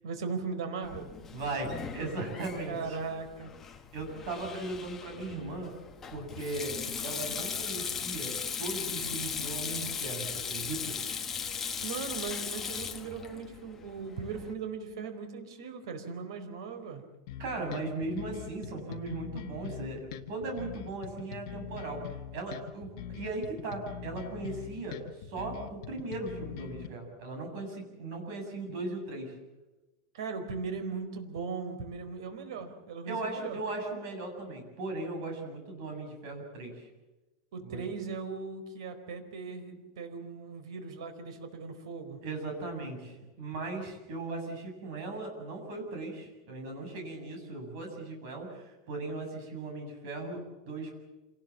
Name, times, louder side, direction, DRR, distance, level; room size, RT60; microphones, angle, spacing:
voice 1, 0.0-1.1 2.7-3.5 11.8-17.0 30.1-33.6 37.5-42.2, right 5 dB, 90° right, 8 dB, 4.4 m, -38 dB
Sink (filling or washing), 0.8-14.5, left 6 dB, 15° left, 1.1 m, -38 dB
voice 2, 1.3-3.0 3.9-5.7 6.1-11.0 17.4-22.0 22.3-29.4 32.6-32.7 33.1-36.9 37.7-37.8 42.2-50.9, right 2 dB, 50° right, 3 dB, 7.5 m, -38 dB
sound 1, 17.3-26.9, left 9 dB, 50° left, 1.7 m, -42 dB
27.0 x 19.0 x 7.4 m, 1.1 s
supercardioid pair, 175°, 3 cm